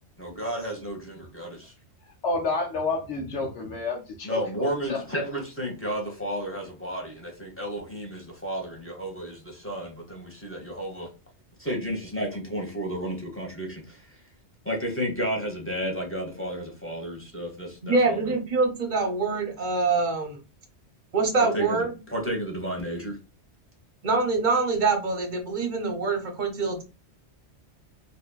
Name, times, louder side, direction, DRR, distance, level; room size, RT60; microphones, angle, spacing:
voice 1, 0.2-1.7 4.2-11.1 11.6-14.0 14.6-18.4 21.4-23.2, equal, 10° left, 0 dB, 1.2 m, -32 dB
voice 2, 2.2-5.0, left 3 dB, 80° left, -1 dB, 1.0 m, -30 dB
voice 3, 17.8-20.4 21.1-21.9 24.0-26.8, right 3 dB, 45° right, 4 dB, 0.9 m, -25 dB
4.1 x 2.7 x 2.3 m, 0.29 s
omnidirectional pair, 1.2 m